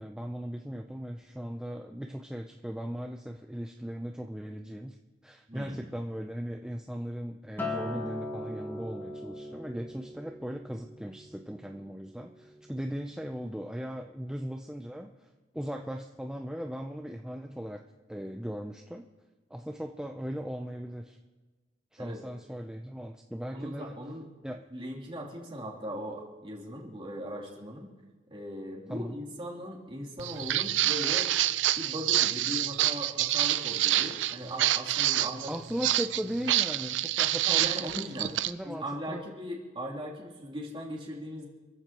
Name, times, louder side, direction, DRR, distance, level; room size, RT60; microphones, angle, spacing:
voice 1, 0.0-5.0 5.2-15.3 15.5-17.8 18.1-19.1 19.5-21.2 21.9-24.0 24.4-24.6 28.9-29.2 35.5-39.2, equal, 5° right, 3 dB, 0.5 m, -38 dB
voice 2, 5.5-5.8 22.0-22.2 23.5-24.2 24.7-27.9 28.3-31.3 31.7-35.5 37.4-38.3 38.6-41.5, equal, 30° right, -3 dB, 3.1 m, -39 dB
Acoustic guitar, 7.6-12.0 12.4-12.8, left 1 dB, 10° left, 1.5 m, -39 dB
Walk footsteps, 30.2-38.5, right 13 dB, 90° right, 0.5 m, -27 dB
28.0 x 14.5 x 3.0 m, 1.3 s
head